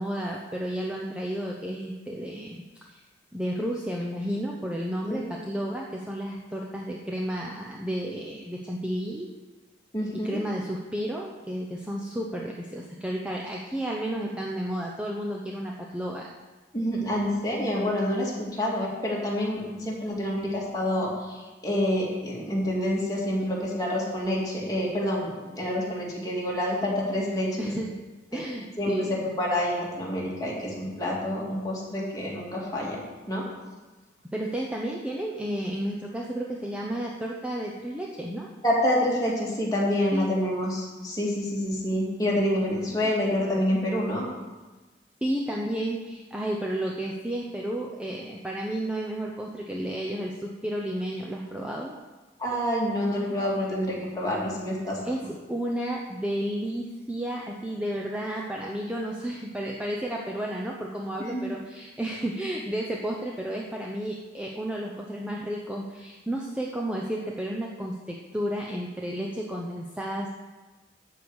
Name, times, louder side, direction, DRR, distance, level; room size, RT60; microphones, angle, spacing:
voice 1, 0.0-2.6 2.9-3.0 3.3-9.3 10.1-16.3 27.6-28.0 28.3-29.1 34.3-38.5 40.1-40.3 42.9-43.0 45.2-52.0 55.0-70.3, right 1 dB, 5° right, -2 dB, 0.8 m, -32 dB
voice 2, 9.9-10.4 16.7-27.7 28.3-28.4 28.8-33.0 33.3-33.4 38.6-44.3 52.4-55.0 61.2-61.5, left 1 dB, 20° left, -4 dB, 2.6 m, -27 dB
12.0 x 4.8 x 8.1 m, 1.2 s
head